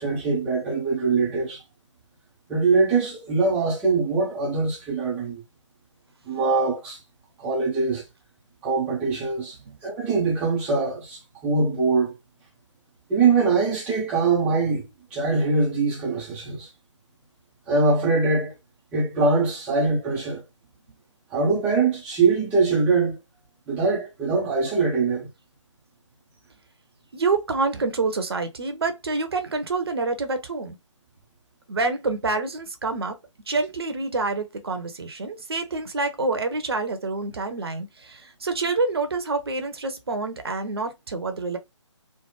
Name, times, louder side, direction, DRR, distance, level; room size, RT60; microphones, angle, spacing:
voice 1, 0.0-1.6 2.5-5.4 6.3-7.0 7.4-8.0 8.6-9.6 9.8-12.2 13.1-14.8 15.1-16.7 17.7-18.5 18.9-20.4 21.3-23.2 23.7-25.3, right 4 dB, 5° right, 0.5 m, -23 dB
voice 2, 27.1-30.8 31.7-33.2 33.5-41.6, right 3 dB, 50° right, 0.8 m, -27 dB
3.2 x 2.1 x 3.1 m
figure-of-eight pair, 150°, 16 cm